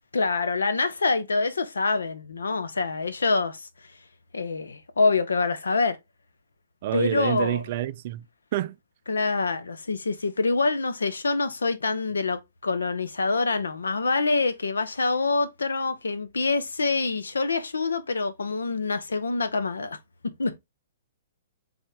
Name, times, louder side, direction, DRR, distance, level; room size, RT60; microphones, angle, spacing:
voice 1, 0.1-3.7 4.3-6.0 6.9-7.6 9.1-20.0 20.4-20.6, left 3 dB, 90° left, 0.6 m, -26 dB
voice 2, 6.8-8.3 8.5-8.8, right 13 dB, 50° right, 0.3 m, -27 dB
3.7 x 3.5 x 3.3 m
hypercardioid pair, 130°, 0 cm